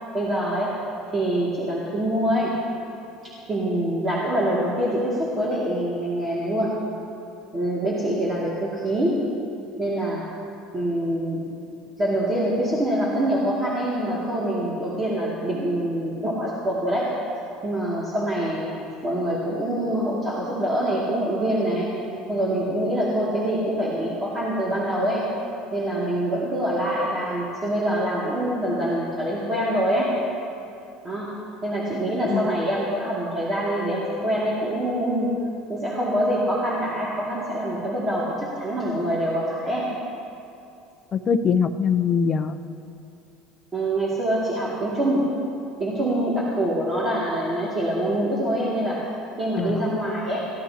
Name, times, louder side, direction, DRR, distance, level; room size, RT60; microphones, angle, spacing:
voice 1, 0.1-0.8 1.1-2.6 3.2-6.8 7.5-9.2 9.8-10.3 10.7-11.5 12.0-17.1 17.6-18.7 19.0-21.9 22.3-25.3 25.7-30.1 31.0-31.3 31.6-35.3 35.7-39.9 43.7-45.3 45.8-49.0 49.4-50.5, right 1 dB, 15° right, -7 dB, 2.3 m, -25 dB
voice 2, 41.1-42.6 49.6-50.0, left 6 dB, 25° left, 8 dB, 0.6 m, -23 dB
29.0 x 15.5 x 2.9 m, 2.7 s
cardioid pair, 175°, 0 cm